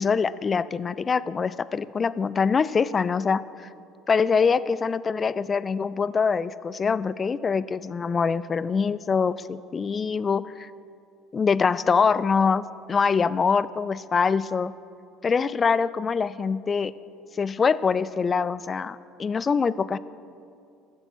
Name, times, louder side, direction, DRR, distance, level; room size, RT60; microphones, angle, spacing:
voice 1, 0.0-3.7 4.1-10.7 11.3-14.7 15.2-16.9 17.3-20.0, left 5 dB, 30° left, 16 dB, 0.3 m, -24 dB
9.9 x 6.9 x 6.1 m, 2.5 s
hypercardioid pair, 70°, 0 cm